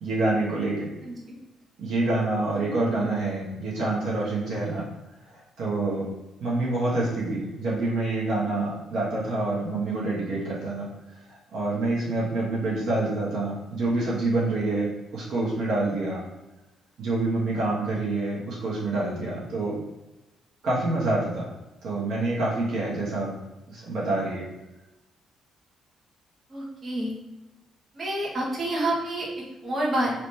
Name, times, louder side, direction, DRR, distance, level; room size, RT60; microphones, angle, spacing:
voice 1, 0.0-0.9 1.8-4.9 5.3-6.1 6.4-10.9 11.3-16.2 17.0-19.8 20.6-21.5 21.8-23.3 23.7-24.4, right 2 dB, 70° right, -6 dB, 1.2 m, -27 dB
voice 2, 26.5-27.1 27.9-30.1, right 1 dB, 40° right, -5 dB, 1.5 m, -28 dB
3.3 x 3.0 x 4.1 m, 1.0 s
cardioid pair, 90°, 0 cm